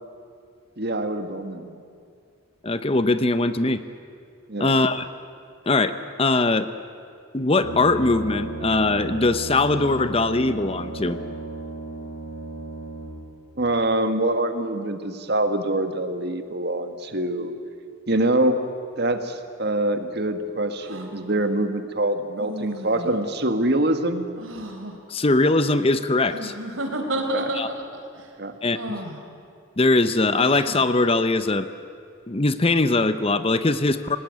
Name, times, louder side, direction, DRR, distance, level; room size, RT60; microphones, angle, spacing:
voice 1, 0.8-1.7 4.5-4.7 13.6-17.5 18.1-18.6 19.0-24.2 27.1-27.6 28.4-28.5, right 1 dB, 50° right, 8 dB, 1.8 m, -25 dB
voice 2, 2.6-3.8 4.6-5.0 5.7-6.7 7.3-11.2 25.1-26.5 27.5-27.7 28.6-28.8 29.8-31.7 32.3-34.2, left 2 dB, 30° left, 11 dB, 0.8 m, -21 dB
Brass instrument, 7.6-13.3, right 2 dB, 50° left, 5.3 m, -35 dB
sound 1, 20.8-21.1 22.4-23.2 24.4-24.9 26.3-28.0 28.7-29.2 30.4-30.9, right 1 dB, 85° right, 3.1 m, -31 dB
29.0 x 18.5 x 9.4 m, 2.3 s
head